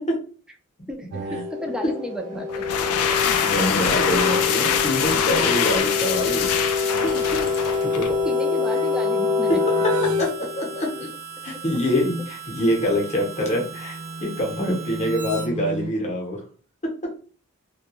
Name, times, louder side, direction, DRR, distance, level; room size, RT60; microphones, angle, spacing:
voice 1, 0.9-2.6 4.1-4.4 6.2-6.3 7.8-9.6, equal, 5° right, 3 dB, 0.3 m, -33 dB
sound 1, 1.1-11.1 13.2-15.9, left 4 dB, 85° right, 0.4 m, -26 dB
sound 2, 2.5-8.2, left 8 dB, 75° left, 0.3 m, -24 dB
Harmonica, 3.0-15.5, right 7 dB, 50° right, 0.7 m, -39 dB
voice 2, 3.2-8.1 9.5-9.6 10.2-10.3 10.6-11.1 11.4-16.4, left 1 dB, 30° left, 0 dB, 0.7 m, -25 dB
2.2 x 2.1 x 2.9 m, 0.41 s
head